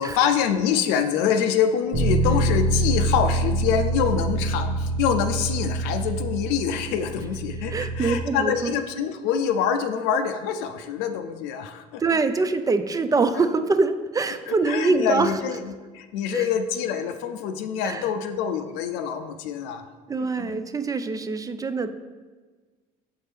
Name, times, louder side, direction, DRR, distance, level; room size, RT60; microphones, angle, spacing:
voice 1, 0.0-12.2 13.4-13.5 14.5-19.9 20.2-20.6, left 7 dB, 80° left, 7 dB, 0.5 m, -26 dB
Bass guitar, 1.9-8.2, right 2 dB, 65° right, 1.5 m, -25 dB
voice 2, 7.7-8.7 12.0-15.3 16.3-16.5 17.8-18.1 20.1-21.9, right 3 dB, 20° right, 11 dB, 0.4 m, -24 dB
7.0 x 4.4 x 3.3 m, 1.4 s
supercardioid pair, 80°, 17 cm